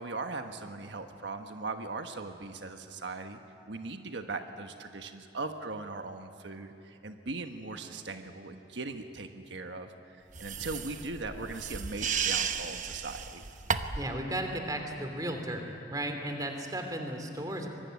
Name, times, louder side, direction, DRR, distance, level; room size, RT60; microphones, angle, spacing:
voice 1, 0.0-3.4 3.7-9.9 10.4-13.4, right 3 dB, 85° right, 6 dB, 1.3 m, -39 dB
sound 1, 10.3-14.2, right 6 dB, 45° right, 1.0 m, -34 dB
voice 2, 13.9-15.6 15.9-17.7, right 1 dB, 20° right, 4 dB, 3.0 m, -35 dB
25.0 x 22.0 x 9.6 m, 2.7 s
head